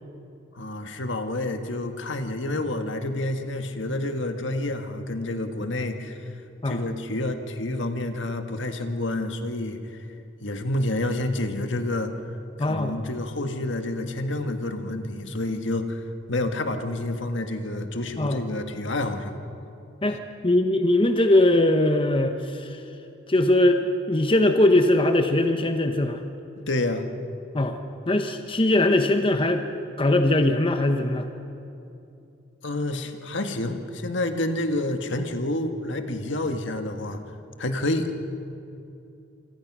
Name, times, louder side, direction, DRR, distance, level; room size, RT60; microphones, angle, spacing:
voice 1, 0.5-6.2 6.7-10.0 10.4-12.1 12.6-16.0 16.3-19.4 26.7-27.1 32.6-37.2 37.6-38.1, left 1 dB, 65° left, 6 dB, 1.8 m, -28 dB
voice 2, 12.6-12.9 18.2-18.4 20.0-22.8 23.3-23.8 24.1-26.2 27.5-27.8 28.1-29.7 30.0-31.3, left 1 dB, 25° left, 6 dB, 1.1 m, -21 dB
26.5 x 25.0 x 6.3 m, 2.7 s
head